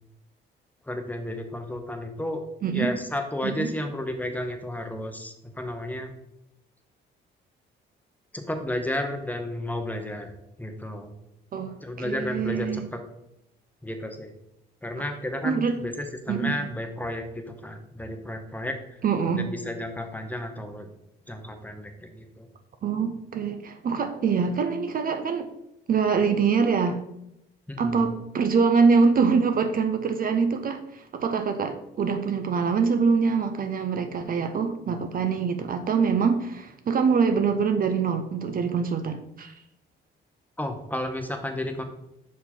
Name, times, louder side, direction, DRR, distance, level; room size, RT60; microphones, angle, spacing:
voice 1, 0.8-2.4 2.7-6.1 8.3-10.3 10.6-11.1 11.8-13.0 13.8-14.3 14.8-19.0 19.3-20.9 21.3-22.5 27.7-28.1 40.6-41.8, left 1 dB, 10° left, 5 dB, 0.9 m, -32 dB
voice 2, 11.5-12.9 15.4-15.8 16.3-16.5 19.0-19.5 22.8-25.5 25.9-27.0 27.8-39.5, right 5 dB, 45° right, 7 dB, 0.6 m, -24 dB
5.6 x 4.7 x 4.3 m, 0.83 s
cardioid pair, 90°, 20 cm